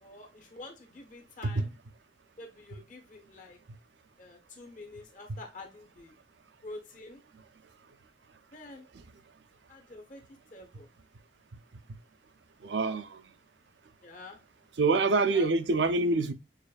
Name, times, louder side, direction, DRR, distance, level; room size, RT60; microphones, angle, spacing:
voice 1, 0.0-1.7 2.4-3.6 4.2-6.1 6.6-7.2 8.5-8.9 9.7-10.2 10.5-10.9 14.0-14.4 15.2-15.6, left 2 dB, 45° left, 1.0 m, -47 dB
voice 2, 12.6-13.2 14.8-16.3, right 3 dB, 75° right, 0.5 m, -26 dB
6.6 x 2.6 x 2.3 m
head